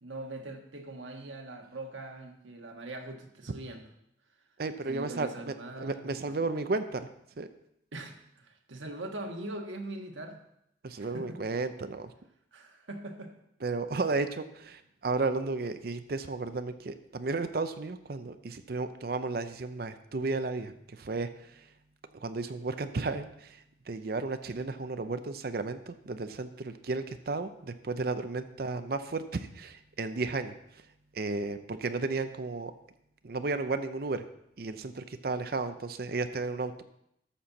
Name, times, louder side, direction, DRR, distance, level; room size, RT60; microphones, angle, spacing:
voice 1, 0.0-3.8 4.8-6.4 7.9-10.4 11.0-11.4 12.5-13.3, right 2 dB, 85° right, 3 dB, 1.4 m, -42 dB
voice 2, 4.6-7.1 7.4-7.5 10.8-12.1 13.6-21.7 22.2-30.9 31.1-32.7 33.2-34.3 34.6-36.8, right 3 dB, 50° right, 10 dB, 0.5 m, -33 dB
12.5 x 4.4 x 7.1 m, 0.76 s
head